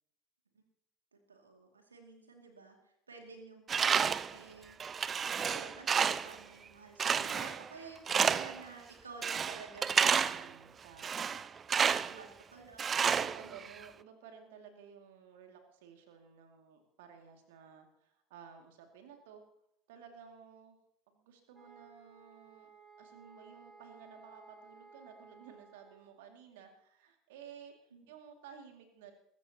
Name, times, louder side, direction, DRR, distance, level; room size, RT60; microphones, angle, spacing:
voice 1, 1.1-2.8 3.1-4.8 5.4-10.5 12.2-12.3 12.5-13.5 27.9-28.1, right 4 dB, 80° right, 3 dB, 2.5 m, -52 dB
Tools, 3.7-4.4 4.8-6.4 7.0-7.7 8.1-8.6 9.2-10.5 11.0-12.2 12.8-13.8, right 7 dB, 30° right, 0.5 m, -30 dB
voice 2, 9.6-12.3 13.2-19.4 19.9-20.8 21.1-22.7 23.0-29.1, right 7 dB, 65° right, 4 dB, 2.4 m, -55 dB
sound 1, 21.5-26.2, right 4 dB, 10° left, 5.8 m, -58 dB
22.5 x 13.5 x 3.0 m, 0.75 s
figure-of-eight pair, 70°, 0 cm